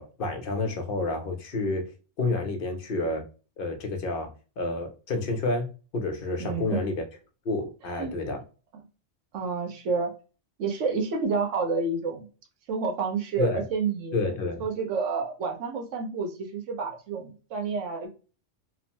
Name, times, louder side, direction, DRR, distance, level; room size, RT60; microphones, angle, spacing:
voice 1, 0.0-1.9 2.2-3.2 3.6-7.0 7.5-8.4 13.4-13.6 14.1-14.6, left 2 dB, 55° left, 0.8 m, -29 dB
voice 2, 6.4-6.8 8.0-8.1 9.3-10.1 10.6-12.3 12.7-14.1 14.6-18.1, right 4 dB, 80° right, 1.1 m, -29 dB
3.0 x 2.1 x 2.7 m
omnidirectional pair, 1.2 m